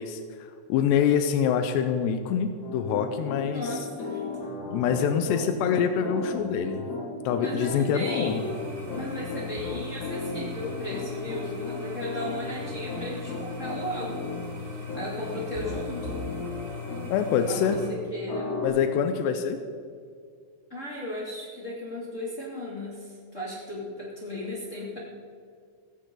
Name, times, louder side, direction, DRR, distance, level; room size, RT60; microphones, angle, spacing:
voice 1, 0.0-3.8 4.7-6.8 7.3-8.4 17.1-17.8 18.6-19.6, left 8 dB, 85° left, 7 dB, 2.4 m, -25 dB
Piano, 2.6-17.8 18.3-18.7, left 3 dB, 60° left, 4.9 m, -35 dB
voice 2, 3.4-4.3 7.4-8.6 8.9-14.3 14.9-16.2 17.5-18.5 19.2-19.3 20.7-25.0, left 1 dB, 30° left, -6 dB, 1.5 m, -36 dB
sound 1, 8.2-17.9, left 5 dB, 50° right, 0.9 m, -39 dB
16.5 x 16.0 x 3.9 m, 2.2 s
omnidirectional pair, 5.9 m